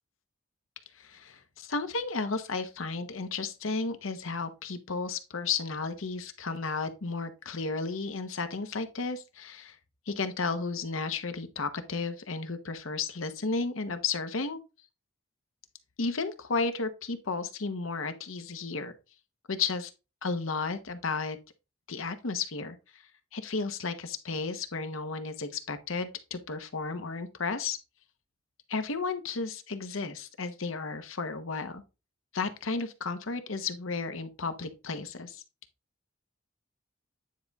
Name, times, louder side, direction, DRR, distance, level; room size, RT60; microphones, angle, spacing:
voice 1, 0.9-9.8 10.1-14.6 16.0-18.9 19.5-19.9 20.2-21.4 21.9-23.0 23.3-27.8 28.7-31.8 32.3-35.4, left 4 dB, 80° left, 1.0 m, -33 dB
9.4 x 4.0 x 3.5 m
head